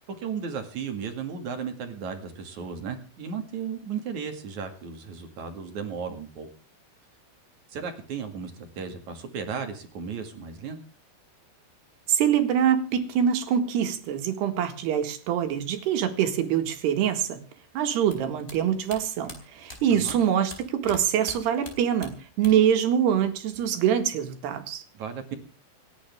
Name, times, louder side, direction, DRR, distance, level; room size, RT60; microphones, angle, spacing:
voice 1, 0.1-6.5 7.7-10.8 19.9-20.2 24.9-25.4, right 6 dB, 50° right, 5 dB, 3.1 m, -35 dB
voice 2, 12.1-17.4 17.8-24.8, right 9 dB, 80° right, 6 dB, 3.9 m, -24 dB
sound 1, 18.0-21.0 21.2-22.8 23.0-23.8, left 2 dB, 15° left, 4.1 m, -44 dB
29.5 x 10.5 x 3.6 m, 0.34 s
omnidirectional pair, 4.7 m